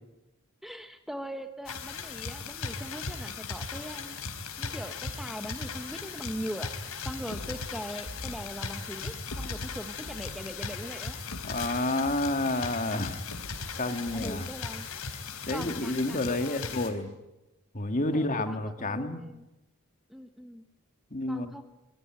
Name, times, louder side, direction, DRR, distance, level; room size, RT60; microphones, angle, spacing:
voice 1, 0.6-4.2 4.6-6.7 7.0-11.2 14.1-14.9 15.5-16.7 18.1-19.5 20.1-20.6 21.3-21.6, equal, ahead, 7 dB, 1.1 m, -41 dB
sound 1, 1.7-16.9, left 5 dB, 90° left, 4.1 m, -38 dB
sound 2, 7.3-15.2, left 1 dB, 70° left, 1.8 m, -45 dB
voice 2, 11.4-13.2 13.8-14.5 15.5-17.1 17.7-19.2 21.1-21.5, left 2 dB, 35° left, 7 dB, 2.0 m, -29 dB
25.5 x 22.0 x 9.1 m, 0.99 s
head